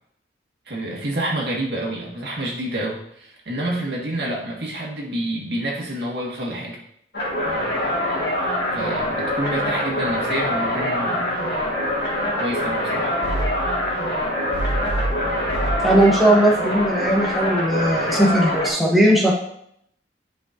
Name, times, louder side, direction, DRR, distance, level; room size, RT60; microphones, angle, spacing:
voice 1, 0.7-6.8 8.7-11.3 12.4-13.1, right 1 dB, 70° right, -2 dB, 1.8 m, -28 dB
sound 1, 7.1-18.7, equal, 65° left, 2.1 m, -24 dB
voice 2, 15.8-19.3, right 1 dB, ahead, -4 dB, 1.1 m, -18 dB
10.0 x 5.2 x 2.7 m, 0.70 s
head